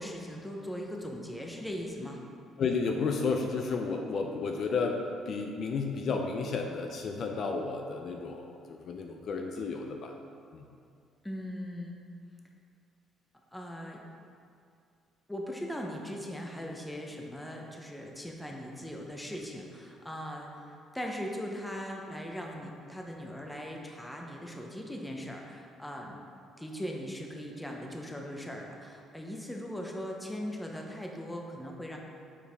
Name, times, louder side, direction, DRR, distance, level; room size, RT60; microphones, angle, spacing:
voice 1, 0.0-2.2 11.2-12.0 13.5-14.0 15.3-26.2 26.6-32.0, equal, 5° left, 0 dB, 0.6 m, -39 dB
voice 2, 2.6-5.0 5.3-10.1 10.5-10.7, left 4 dB, 45° left, 3 dB, 0.4 m, -32 dB
7.2 x 4.5 x 3.4 m, 2.4 s
cardioid pair, 145°, 0 cm